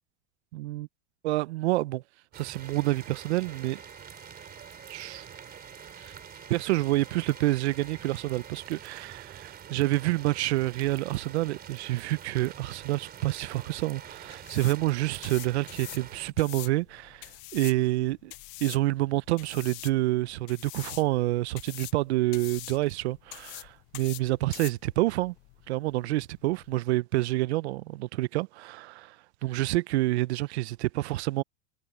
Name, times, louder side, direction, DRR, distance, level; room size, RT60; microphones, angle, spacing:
voice 1, 0.5-0.9 1.2-2.0 2.3-3.8 4.9-5.3 6.0-6.1 6.5-18.3 18.6-25.3 25.7-31.4, right 18 dB, 85° right, 0.6 m, -28 dB
sound 1, 2.3-16.3, right 9 dB, 30° right, 4.3 m, -46 dB
Drill, 2.6-8.6, left 2 dB, 10° left, 6.7 m, -55 dB
sound 2, 13.3-26.8, left 25 dB, 50° left, 0.7 m, -45 dB
supercardioid pair, 130°, 32 cm